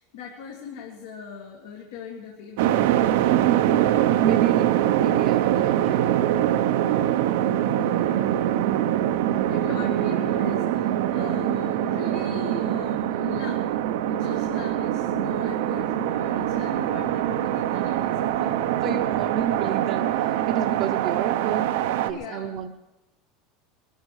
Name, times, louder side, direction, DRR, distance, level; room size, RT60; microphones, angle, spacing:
voice 1, 0.0-2.8 6.8-7.2 7.7-8.9 9.2-13.7 14.1-19.0 22.1-22.6, left 5 dB, 85° left, 0 dB, 2.0 m, -39 dB
sound 1, 2.6-22.1, right 12 dB, 80° right, 0.8 m, -23 dB
voice 2, 3.2-3.8 4.2-6.0 18.8-22.7, right 9 dB, 45° right, 3 dB, 0.8 m, -30 dB
22.5 x 12.0 x 4.9 m, 1.0 s
supercardioid pair, 160°, 0 cm